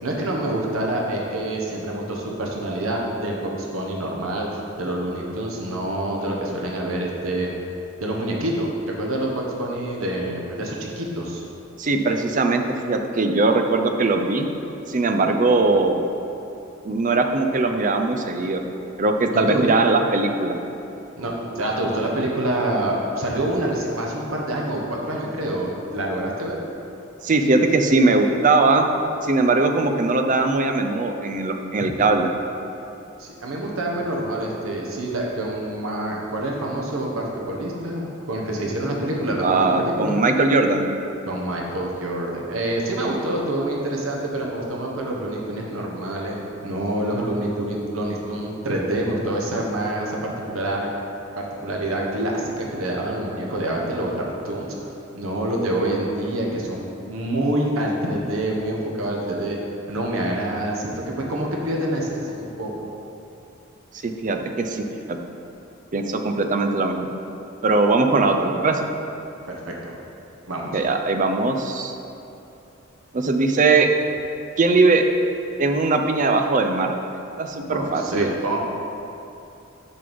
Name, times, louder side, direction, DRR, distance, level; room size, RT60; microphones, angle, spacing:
voice 1, 0.0-4.5 4.8-7.5 8.0-8.7 9.0-11.4 19.3-19.6 21.2-26.6 33.2-40.2 41.3-46.3 46.6-50.9 51.3-59.6 59.9-62.9 69.5-70.0 70.5-70.8 77.6-78.6, right 1 dB, 85° right, -1 dB, 1.2 m, -26 dB
voice 2, 11.8-14.5 14.9-16.0 16.8-18.6 19.0-20.5 27.2-28.9 29.2-32.3 39.4-40.9 64.0-65.2 65.9-67.1 67.6-68.8 70.7-71.9 73.1-73.9 74.6-75.0 75.6-76.9 77.4-78.3, right 3 dB, 40° right, 5 dB, 0.5 m, -20 dB
6.7 x 5.3 x 5.3 m, 2.8 s
head